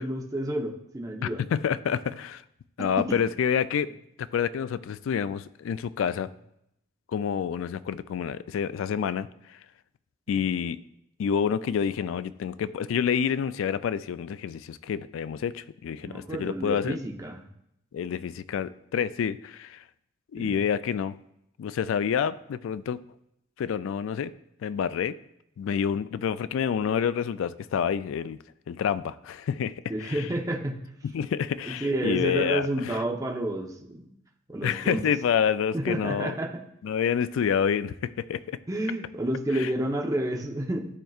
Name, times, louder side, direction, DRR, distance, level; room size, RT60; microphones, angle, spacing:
voice 1, 0.0-1.4 16.0-17.5 20.4-20.6 29.9-30.8 31.6-34.1 34.5-35.0 35.7-36.5 38.7-40.9, right 1 dB, 15° right, 1 dB, 0.7 m, -30 dB
voice 2, 1.2-2.4 2.8-3.9 4.3-6.3 7.1-9.3 10.3-10.8 11.2-17.0 17.9-19.8 20.3-21.2 21.6-23.0 23.6-24.3 24.6-25.2 25.6-28.4 28.7-30.3 31.0-33.0 34.6-36.3 36.8-38.6 39.5-39.7, left 7 dB, 75° left, 15 dB, 0.3 m, -28 dB
12.0 x 4.4 x 2.4 m, 0.79 s
head